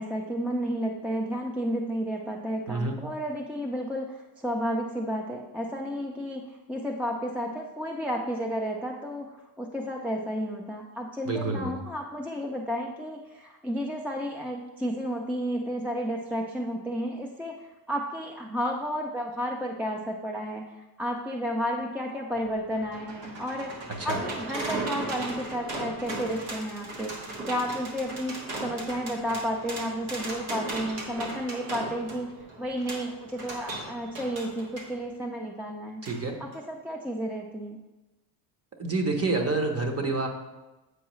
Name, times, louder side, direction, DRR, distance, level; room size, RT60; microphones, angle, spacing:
voice 1, 0.0-9.3 9.6-17.5 17.9-20.6 21.0-23.7 24.0-27.1 27.5-32.3 32.6-36.0 36.4-37.8, equal, 5° right, 1 dB, 0.4 m, -32 dB
voice 2, 11.3-11.7 24.0-24.2 36.0-36.4 38.8-40.3, right 3 dB, 35° right, 4 dB, 1.0 m, -28 dB
sound 1, 22.4-34.9 36.1-36.2 36.5-36.6, right 2 dB, 75° right, 1.5 m, -37 dB
8.1 x 4.6 x 3.1 m, 1.1 s
cardioid pair, 110°, 45 cm